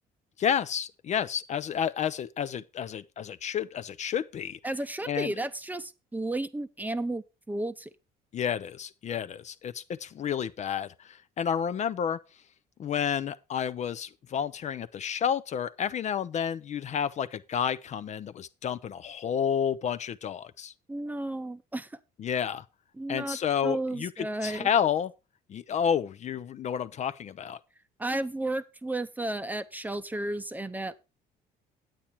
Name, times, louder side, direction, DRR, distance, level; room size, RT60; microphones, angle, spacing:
voice 1, 0.4-4.6 5.1-5.3 8.3-12.2 12.8-20.7 22.2-22.6 23.1-25.1 25.5-27.6, left 8 dB, 45° left, 0.5 m, -30 dB
voice 2, 4.6-7.9 20.9-21.9 22.9-23.4 23.6-24.7 28.0-31.0, right 1 dB, 10° right, 0.7 m, -33 dB
8.9 x 8.7 x 4.3 m
cardioid pair, 110°, 17 cm